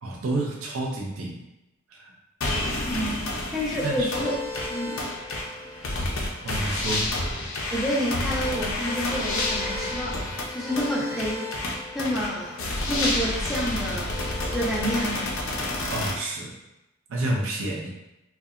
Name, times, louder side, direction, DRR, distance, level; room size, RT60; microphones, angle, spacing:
voice 1, 0.0-1.4 1.9-2.1 3.8-4.3 6.4-7.1 15.9-16.5 17.1-17.9, right 2 dB, 70° right, -1 dB, 0.4 m, -29 dB
sound 1, 2.4-16.1, left 2 dB, 65° left, 0.4 m, -29 dB
voice 2, 2.9-4.4 4.7-5.0 7.7-11.6 11.9-12.6 12.9-14.3 14.5-15.3, equal, ahead, -7 dB, 0.5 m, -29 dB
Trumpet, 8.3-10.8, left 2 dB, 45° left, 0.8 m, -42 dB
2.7 x 2.2 x 2.3 m, 0.93 s
head